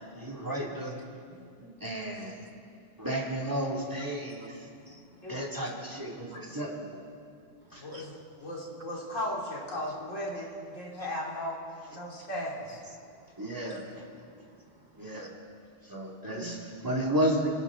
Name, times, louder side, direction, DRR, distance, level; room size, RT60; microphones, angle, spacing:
voice 1, 0.2-1.0 1.8-2.3 3.0-4.7 5.3-7.0 7.7-8.1 13.4-13.8 14.9-15.3 15.8-17.5, right 1 dB, 15° right, -2 dB, 2.3 m, -33 dB
voice 2, 1.3-1.7 5.2-5.4 7.7-11.6 11.9-12.8, left 1 dB, 85° left, -3 dB, 3.2 m, -37 dB
voice 3, 4.8-5.3 6.3-6.6 7.7-8.2 13.0-13.3 13.6-13.7 14.4-15.1 16.3-16.8, right 4 dB, 40° right, 3 dB, 1.1 m, -50 dB
29.5 x 11.5 x 3.7 m, 2.4 s
omnidirectional pair, 1.3 m